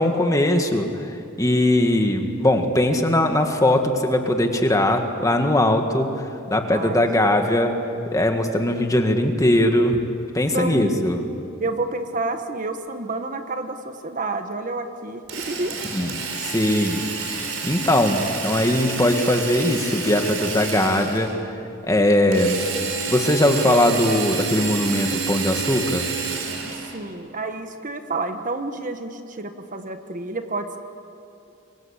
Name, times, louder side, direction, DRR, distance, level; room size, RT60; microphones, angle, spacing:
voice 1, 0.0-7.7 8.1-10.0 10.3-11.2 15.9-16.1 16.4-21.5 21.8-22.7 23.1-26.1, left 1 dB, 15° left, 4 dB, 1.8 m, -20 dB
voice 2, 6.7-7.0 10.5-11.0 11.6-15.8 26.7-30.8, right 2 dB, 40° right, 7 dB, 1.3 m, -29 dB
Drill, 15.3-21.4 22.3-27.0, right 5 dB, 80° right, 4.4 m, -29 dB
27.5 x 23.0 x 8.2 m, 2.6 s
head